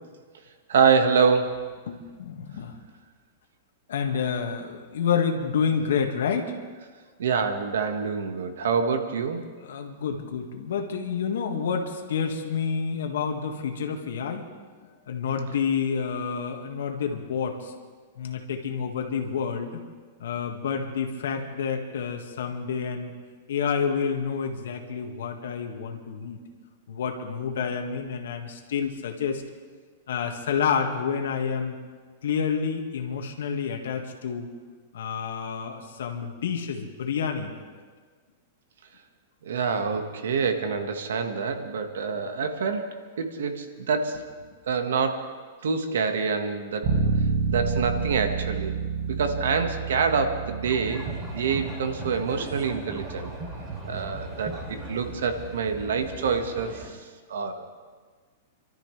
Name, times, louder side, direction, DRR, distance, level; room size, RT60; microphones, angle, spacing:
voice 1, 0.7-1.7 7.2-9.5 39.4-44.3 44.7-45.2 45.6-46.9 47.5-48.8 49.1-51.1 51.3-53.3 53.8-57.7, right 5 dB, 85° right, 6 dB, 1.5 m, -26 dB
voice 2, 1.9-2.8 3.9-6.6 9.6-14.5 15.1-17.7 18.2-19.8 20.2-23.1 23.5-26.4 26.9-29.4 30.1-31.7 32.2-34.5 34.9-37.6 44.5-44.6, left 6 dB, 85° left, 3 dB, 1.8 m, -29 dB
Bass guitar, 46.8-56.6, right 5 dB, 50° right, 1.6 m, -31 dB
sound 1, 50.7-56.9, right 2 dB, 25° right, 2.9 m, -38 dB
28.0 x 13.0 x 3.3 m, 1.5 s
supercardioid pair, 155°, 0 cm